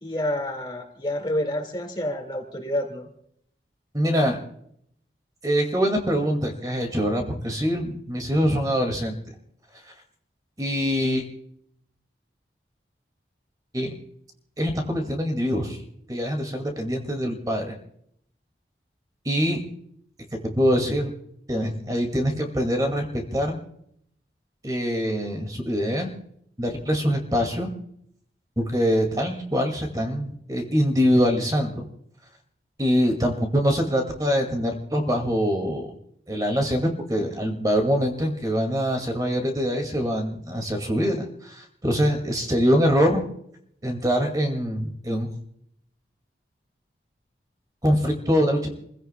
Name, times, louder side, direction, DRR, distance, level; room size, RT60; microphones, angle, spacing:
voice 1, 0.0-3.1, left 1 dB, 25° left, 2 dB, 2.0 m, -28 dB
voice 2, 3.9-4.4 5.4-9.2 10.6-11.2 13.7-14.0 14.6-15.8 16.1-17.8 19.3-19.6 20.6-21.1 21.5-23.6 24.6-26.1 26.6-27.7 28.6-31.8 32.8-35.9 36.3-43.2 43.8-45.3 47.8-48.7, equal, 20° right, 4 dB, 2.1 m, -24 dB
29.0 x 15.5 x 2.2 m, 0.70 s
head